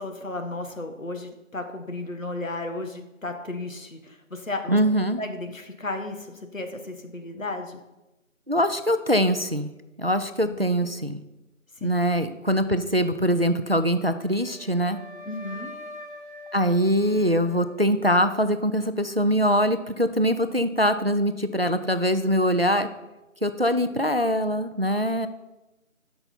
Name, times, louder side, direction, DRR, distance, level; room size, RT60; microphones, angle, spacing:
voice 1, 0.0-4.8 5.2-7.8 10.4-10.7 11.8-11.9 15.3-15.7, left 2 dB, 70° left, 5 dB, 1.5 m, -34 dB
voice 2, 4.7-5.2 8.5-9.7 10.0-11.2 11.8-15.0 16.5-22.9 23.4-25.3, equal, 50° right, 10 dB, 0.4 m, -23 dB
Wind instrument woodwind instrument, 14.0-18.2, left 1 dB, 55° left, 1.3 m, -44 dB
12.5 x 5.8 x 4.2 m, 1.0 s
figure-of-eight pair, 180°, 40 cm